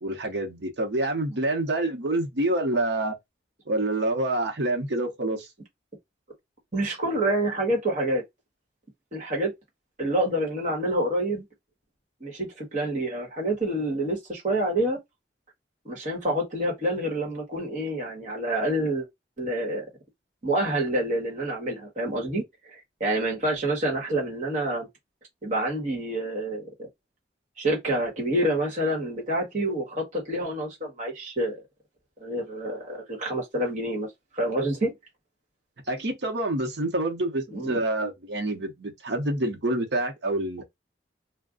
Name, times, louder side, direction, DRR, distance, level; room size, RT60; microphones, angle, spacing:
voice 1, 0.0-3.2 3.7-5.5 35.9-40.6, right 1 dB, 70° right, 0.8 m, -27 dB
voice 2, 6.7-8.2 9.1-9.5 10.0-11.4 12.2-15.0 15.8-19.1 19.4-19.9 20.4-22.4 22.7-24.9 25.4-26.9 27.6-31.6 32.2-34.1 34.3-34.9 37.5-37.8, right 1 dB, 40° right, 1.2 m, -27 dB
2.5 x 2.2 x 3.6 m
head